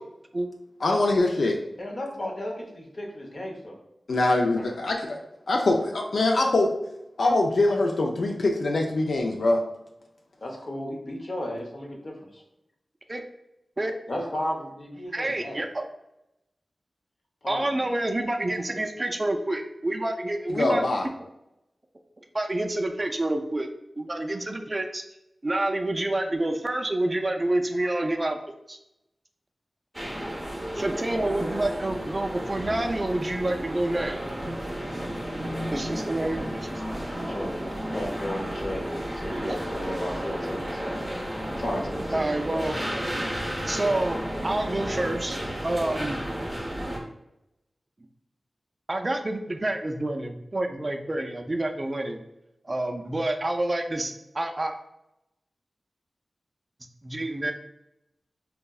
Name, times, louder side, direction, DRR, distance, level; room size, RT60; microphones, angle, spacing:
voice 1, 0.8-1.6 4.1-5.2 5.5-6.7 7.2-9.6 20.6-21.0, left 2 dB, 80° left, 1 dB, 0.3 m, -23 dB
voice 2, 1.8-3.8 10.4-12.4 14.1-15.6 17.4-17.9 35.5-35.9 37.0-38.8 39.1-41.1 41.6-42.4, left 1 dB, 55° left, 0 dB, 0.7 m, -34 dB
voice 3, 15.1-15.8 17.4-20.8 22.3-23.7 24.0-25.0 25.4-28.8 30.7-34.2 35.7-36.8 37.9-38.0 42.1-42.8 43.7-44.2 44.4-46.2 48.9-52.2 52.6-54.7 57.0-57.5, right 1 dB, 30° right, 5 dB, 0.3 m, -28 dB
sound 1, 29.9-47.0, equal, 5° left, 0.7 m, -32 dB
3.5 x 2.0 x 2.3 m, 0.85 s
wide cardioid pair, 85°, 0 cm